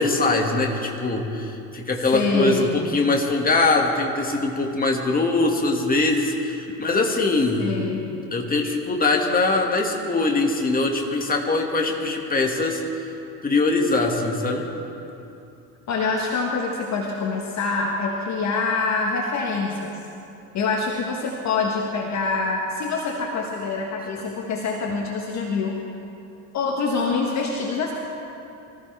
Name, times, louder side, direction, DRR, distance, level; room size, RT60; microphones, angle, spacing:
voice 1, 0.0-7.6 8.3-12.8 13.4-14.7, left 3 dB, 20° left, 1 dB, 2.2 m, -22 dB
voice 2, 2.1-3.0 7.6-8.1 15.9-20.0 20.5-25.8 26.5-27.9, left 4 dB, 35° left, 0 dB, 1.7 m, -25 dB
24.0 x 14.5 x 3.6 m, 2.7 s
figure-of-eight pair, 70°, 46 cm